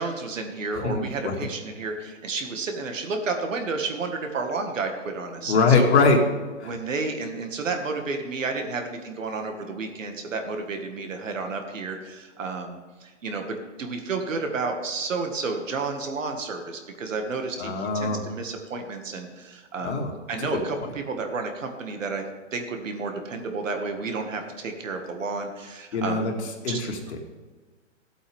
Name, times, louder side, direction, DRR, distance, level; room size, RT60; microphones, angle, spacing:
voice 1, 0.0-5.9 6.6-22.2 22.5-26.2 26.7-26.8, right 4 dB, 75° right, 5 dB, 2.0 m, -31 dB
voice 2, 0.7-1.3 5.4-6.2 6.6-6.7 17.6-18.2 19.8-20.1 20.5-20.9 25.9-26.3 26.6-27.2, left 4 dB, 60° left, 2 dB, 2.3 m, -23 dB
15.0 x 8.3 x 3.6 m, 1.3 s
hypercardioid pair, 155°, 38 cm